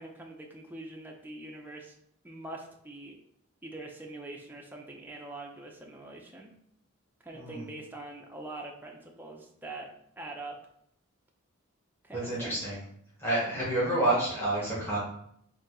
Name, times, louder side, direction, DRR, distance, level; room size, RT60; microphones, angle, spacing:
voice 1, 0.0-1.9 2.2-3.2 3.6-6.5 7.2-9.9 10.2-10.6 12.0-12.6 13.4-13.7, right 2 dB, 10° right, 0 dB, 0.5 m, -44 dB
voice 2, 12.1-12.8 13.2-15.0, right 1 dB, 10° left, -9 dB, 1.5 m, -29 dB
4.0 x 2.7 x 3.8 m, 0.69 s
head